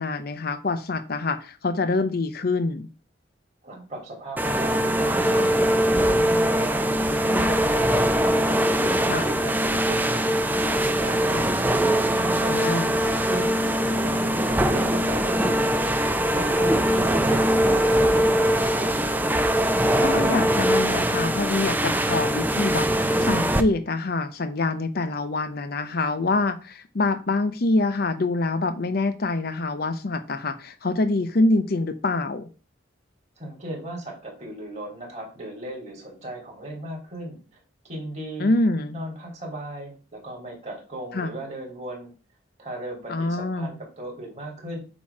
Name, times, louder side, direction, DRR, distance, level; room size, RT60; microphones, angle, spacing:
voice 1, 0.0-2.9 9.1-9.3 12.4-13.0 20.0-32.5 38.4-39.0 41.1-41.3 43.1-43.8, left 2 dB, 55° left, 0.7 m, -25 dB
voice 2, 3.6-8.0 8.4-11.5 11.8-13.6 13.9-15.8 16.3-18.9 33.4-37.4 37.9-38.5 38.9-42.1 42.6-44.8, right 1 dB, 35° right, 3.2 m, -36 dB
sound 1, 4.4-23.6, right 1 dB, 10° right, 0.5 m, -22 dB
8.6 x 3.0 x 5.9 m
head